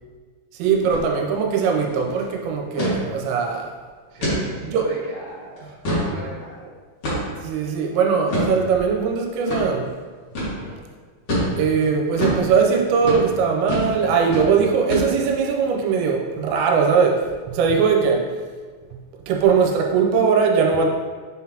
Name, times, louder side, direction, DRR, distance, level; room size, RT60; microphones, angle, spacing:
voice 1, 0.6-3.7 4.7-4.9 7.4-9.9 11.5-18.2 19.3-20.9, right 6 dB, 85° right, 1 dB, 3.2 m, -20 dB
sound 1, 0.8-1.1 1.4-1.5 1.8-2.1 2.8-3.0 3.5-3.6 4.2-4.4 4.9-5.0 5.6-6.1 7.0-7.4 8.3-8.5 9.5-9.6 10.3-10.5 11.3-11.5 12.2-12.4 13.0-13.2 13.7-13.9 14.2-14.5 14.9-15.4, equal, 85° left, 1.2 m, -24 dB
voice 2, 4.1-5.7 6.0-6.8 10.5-10.8, right 2 dB, 65° right, -5 dB, 3.0 m, -38 dB
8.9 x 3.9 x 2.9 m, 1.5 s
omnidirectional pair, 5.8 m